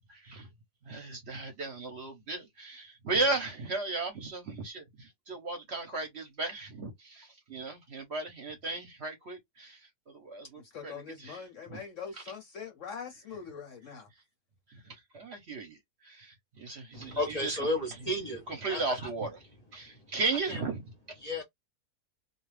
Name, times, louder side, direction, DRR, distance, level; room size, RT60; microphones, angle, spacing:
voice 1, 0.1-0.5 0.9-11.4 11.7-11.8 14.7-17.6 18.5-19.4 19.7-20.8, right 3 dB, 55° right, 0.9 m, -36 dB
voice 2, 10.6-14.1, left 6 dB, 65° left, 0.8 m, -43 dB
voice 3, 16.9-19.1 19.9-20.1 20.5-20.6 21.2-21.4, left 1 dB, 35° left, 0.7 m, -34 dB
2.4 x 2.3 x 3.1 m
omnidirectional pair, 1.7 m